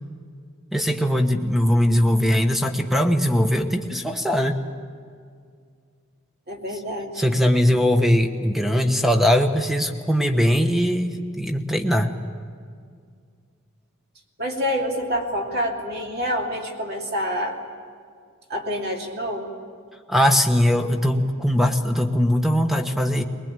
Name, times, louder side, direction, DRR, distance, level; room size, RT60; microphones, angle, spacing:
voice 1, 0.7-4.6 7.1-12.1 20.1-23.2, equal, ahead, 5 dB, 1.1 m, -20 dB
voice 2, 6.5-7.2 14.4-17.6 18.5-19.6, equal, 50° right, 1 dB, 2.8 m, -27 dB
22.0 x 20.0 x 9.0 m, 2.2 s
head